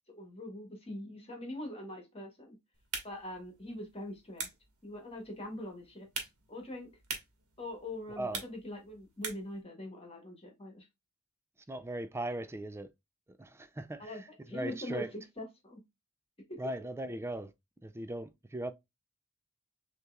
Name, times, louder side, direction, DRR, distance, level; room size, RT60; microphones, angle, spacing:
voice 1, 0.1-2.6 3.0-4.5 4.8-6.9 7.6-10.9 14.0-15.0 15.4-15.8 16.5-16.9, left 1 dB, 25° left, 1.5 m, -43 dB
sound 1, 2.7-9.6, right 5 dB, 80° right, 1.4 m, -45 dB
voice 2, 11.7-12.9 13.4-15.1 16.6-17.5 17.8-18.7, right 1 dB, 10° right, 0.4 m, -38 dB
6.5 x 3.0 x 2.3 m
head